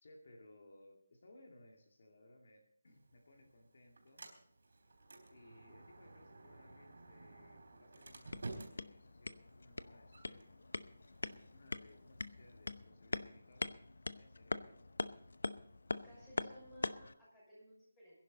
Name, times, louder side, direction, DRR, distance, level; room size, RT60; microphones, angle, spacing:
voice 1, 0.0-4.3 5.3-13.8 14.0-14.8, left 1 dB, 50° left, 2 dB, 2.2 m, -63 dB
Sliding door, 2.9-12.8, right 2 dB, 65° right, 3.9 m, -55 dB
sound 1, 8.1-17.1, left 3 dB, 85° left, 0.8 m, -44 dB
voice 2, 15.9-18.2, equal, 10° left, -7 dB, 6.2 m, -58 dB
22.0 x 11.0 x 4.0 m, 0.65 s
hypercardioid pair, 175°, 0 cm